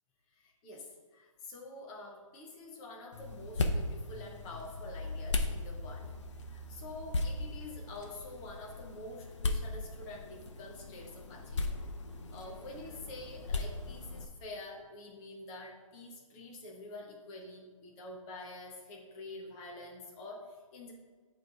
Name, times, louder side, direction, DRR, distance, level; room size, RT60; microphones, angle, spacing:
voice 1, 0.3-6.1 6.5-11.6 12.3-20.9, left 2 dB, 10° left, -2 dB, 0.6 m, -47 dB
sound 1, 3.1-14.2, left 2 dB, 55° left, 0.8 m, -37 dB
9.1 x 3.1 x 4.7 m, 1.5 s
hypercardioid pair, 165°, 18 cm